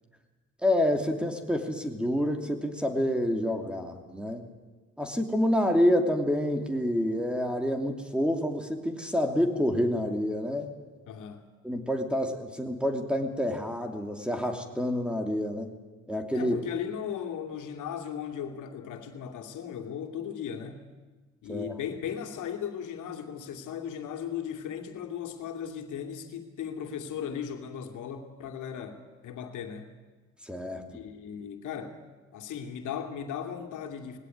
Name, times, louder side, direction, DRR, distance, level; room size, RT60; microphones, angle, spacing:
voice 1, 0.6-4.4 5.0-10.7 11.6-15.7 16.1-16.6 21.5-21.7 30.4-30.8, left 1 dB, 5° right, 5 dB, 2.8 m, -28 dB
voice 2, 11.1-11.5 16.3-20.9 21.4-29.9 30.9-32.0 32.3-34.2, left 8 dB, 85° left, 4 dB, 2.7 m, -37 dB
20.0 x 17.0 x 9.7 m, 1.3 s
cardioid pair, 90°, 30 cm